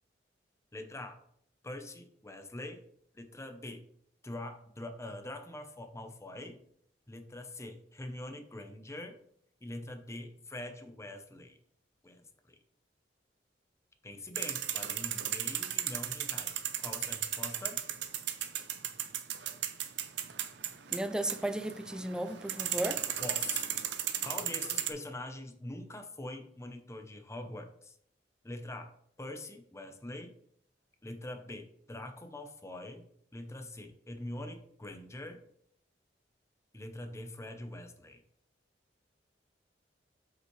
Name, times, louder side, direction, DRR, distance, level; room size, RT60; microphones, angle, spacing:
voice 1, 0.7-1.2 1.6-2.8 3.1-3.8 4.2-6.6 7.1-9.2 9.6-11.6 12.0-12.6 14.0-17.8 23.2-28.0 28.4-28.9 29.2-30.3 31.0-33.0 33.3-35.4 36.7-38.2, left 1 dB, 15° left, 0.8 m, -44 dB
sound 1, 14.3-24.9, right 11 dB, 70° right, 0.6 m, -36 dB
voice 2, 20.9-23.0, right 1 dB, 5° right, 0.4 m, -34 dB
7.9 x 5.4 x 3.2 m
head